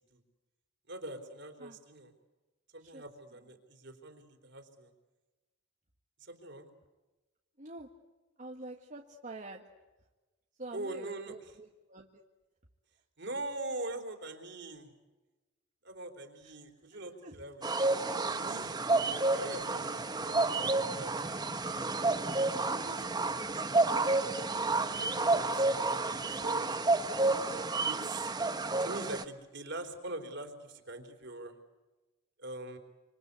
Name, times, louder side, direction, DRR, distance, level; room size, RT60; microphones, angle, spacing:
voice 1, 0.9-2.1 2.7-4.9 6.2-6.7 10.7-11.6 13.2-14.9 15.8-17.8 18.3-18.7 19.3-21.1 21.6-22.0 22.6-26.9 27.9-28.3 28.8-31.5 32.4-32.8, right 2 dB, 60° right, 5 dB, 3.8 m, -43 dB
voice 2, 7.6-7.9 8.4-9.6 10.6-12.2 17.2-17.3, right 2 dB, 40° right, 1 dB, 1.7 m, -46 dB
sound 1, 17.6-29.2, right 3 dB, 20° right, 1.1 m, -30 dB
27.0 x 26.0 x 8.3 m, 1.2 s
head